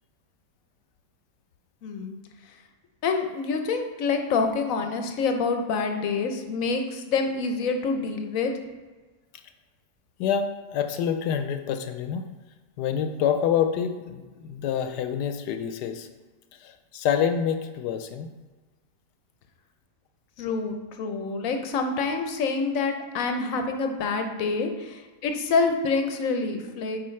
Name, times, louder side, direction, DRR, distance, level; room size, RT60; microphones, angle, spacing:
voice 1, 1.8-2.2 3.0-8.5 20.4-27.0, left 4 dB, 60° left, 5 dB, 1.0 m, -27 dB
voice 2, 10.2-12.3 12.8-16.1 16.5-18.3, left 8 dB, 80° left, 8 dB, 1.2 m, -27 dB
8.5 x 4.6 x 3.2 m, 1.3 s
omnidirectional pair, 1.8 m